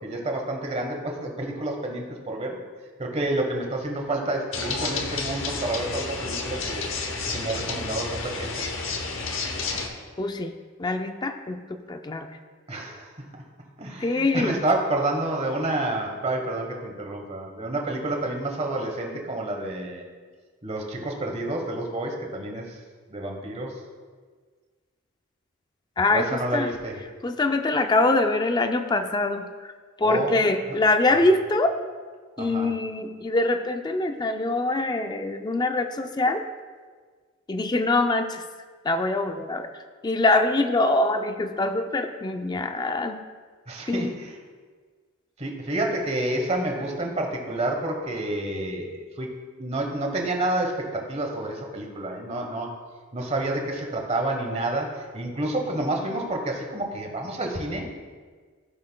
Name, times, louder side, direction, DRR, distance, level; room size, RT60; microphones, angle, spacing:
voice 1, 0.0-2.6 3.0-6.9 7.3-8.6 8.9-9.1 12.7-13.1 13.8-20.1 20.6-22.8 23.1-23.8 26.1-27.0 30.0-30.4 31.1-31.2 32.4-32.7 43.7-44.3 45.4-49.3 49.6-52.7 53.1-58.0, right 1 dB, 30° right, 2 dB, 1.1 m, -29 dB
sound 1, 4.5-9.9, left 4 dB, 65° left, 0.8 m, -30 dB
voice 2, 10.2-10.5 10.8-12.3 14.0-14.5 26.0-26.7 27.2-29.7 30.0-31.8 32.4-36.4 37.5-38.4 38.8-43.2 43.9-44.1, left 2 dB, 20° left, 7 dB, 0.4 m, -24 dB
14.5 x 6.4 x 2.2 m, 1.5 s
head